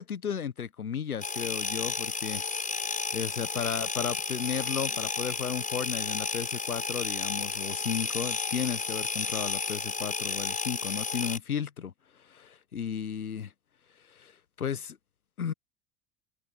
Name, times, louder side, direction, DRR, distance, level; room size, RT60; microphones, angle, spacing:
voice 1, 0.0-2.4 3.1-11.9 12.2-13.5 14.1-14.3 14.6-15.0 15.4-15.5, left 7 dB, 85° left, 1.3 m, -34 dB
sound 1, 1.2-11.4, left 4 dB, 20° left, 6.0 m, -32 dB
figure-of-eight pair, 70°, 43 cm